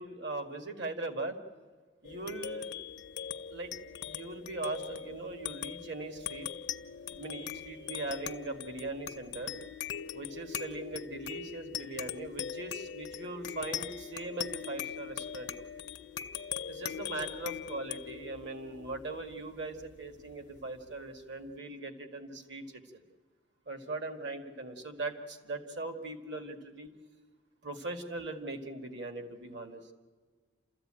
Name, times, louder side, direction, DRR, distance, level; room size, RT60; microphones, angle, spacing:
voice 1, 0.0-1.4 2.0-2.7 3.5-3.7 4.1-6.5 7.1-9.5 10.1-15.7 16.7-23.0 23.7-26.9 27.6-29.9, right 2 dB, 60° right, 6 dB, 1.9 m, -40 dB
sound 1, 2.0-20.9, left 8 dB, 60° left, 0.6 m, -41 dB
28.5 x 13.5 x 8.8 m, 1.4 s
head